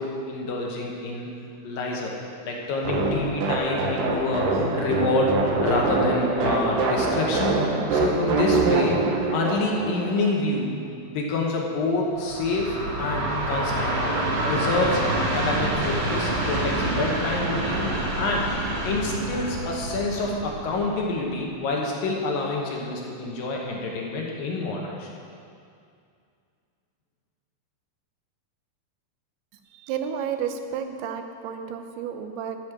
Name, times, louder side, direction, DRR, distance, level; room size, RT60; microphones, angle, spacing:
voice 1, 0.0-1.3 1.6-2.2 2.4-5.4 5.6-7.6 7.9-10.7 11.0-18.5 18.8-25.1, left 2 dB, 70° left, -1 dB, 2.7 m, -27 dB
sound 1, 2.8-10.3, right 3 dB, 70° right, 2.4 m, -24 dB
Train, 12.1-21.3, right 1 dB, 45° right, 2.1 m, -27 dB
voice 2, 29.7-32.6, right 7 dB, 90° right, 7 dB, 2.7 m, -31 dB
14.5 x 5.3 x 6.5 m, 2.3 s
omnidirectional pair, 4.4 m